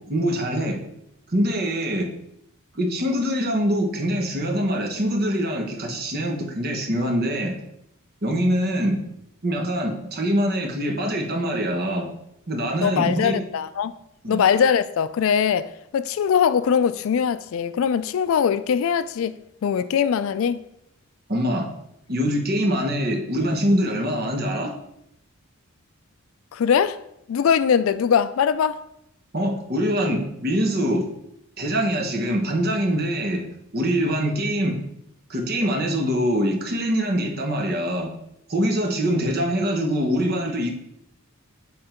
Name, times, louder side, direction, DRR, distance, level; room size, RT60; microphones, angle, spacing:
voice 1, 0.1-0.8 1.3-2.1 2.7-7.6 8.2-9.0 9.4-12.1 12.5-13.4 14.2-14.4 21.3-21.7 22.1-24.7 29.3-31.1 31.6-33.4 33.7-34.8 35.3-38.1 38.5-40.7, equal, 45° right, 1.1 m, -24 dB
voice 2, 12.8-13.9 14.3-20.6 26.5-27.0 27.3-28.8, left 7 dB, 65° left, 0.3 m, -21 dB
7.8 x 3.7 x 4.4 m
head